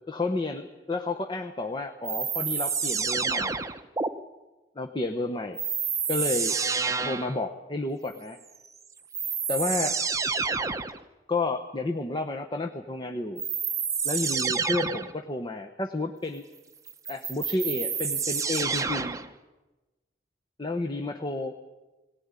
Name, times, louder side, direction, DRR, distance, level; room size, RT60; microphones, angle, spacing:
voice 1, 0.1-3.6 4.8-5.6 6.1-6.6 7.0-8.4 9.5-10.0 11.3-13.4 14.0-16.4 17.1-19.2 20.6-21.5, left 2 dB, 25° left, 5 dB, 0.9 m, -31 dB
sound 1, 2.0-4.1 5.6-7.4 8.7-8.8 9.1-11.0 13.4-15.2 16.9-19.3, right 5 dB, 20° right, 0.8 m, -28 dB
19.0 x 18.5 x 9.7 m, 1.1 s
head